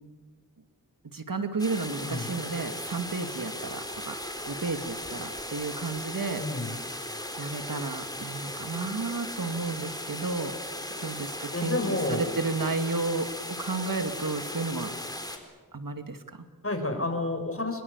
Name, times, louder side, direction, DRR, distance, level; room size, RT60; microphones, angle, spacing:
voice 1, 1.0-4.2 4.4-10.6 11.0-14.9 15.7-16.5, right 3 dB, 65° right, 8 dB, 2.3 m, -32 dB
sound 1, 1.6-15.4, left 1 dB, 10° left, 4.2 m, -37 dB
voice 2, 6.4-6.7 11.5-12.2 16.6-17.8, left 2 dB, 40° left, 5 dB, 6.0 m, -30 dB
24.0 x 23.0 x 8.2 m, 1.3 s
cardioid pair, 45°, 36 cm